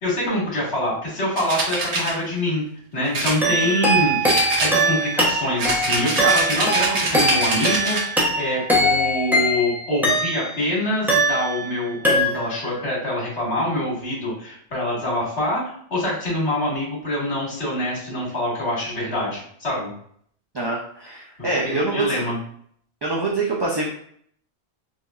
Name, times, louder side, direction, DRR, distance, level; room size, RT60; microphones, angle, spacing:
voice 1, 0.0-2.6 2.9-19.9 21.6-22.4, left 1 dB, 75° left, -5 dB, 2.0 m, -25 dB
sound 1, 1.4-2.1 3.1-3.9 4.3-5.1 5.6-8.1, right 2 dB, 80° right, 1.2 m, -24 dB
sound 2, 3.4-10.7 11.1-11.8 12.0-12.7, right 1 dB, ahead, 0.6 m, -21 dB
voice 2, 20.5-22.2 23.0-23.9, right 3 dB, 45° right, -3 dB, 0.3 m, -25 dB
4.2 x 2.6 x 2.4 m, 0.62 s
omnidirectional pair, 1.1 m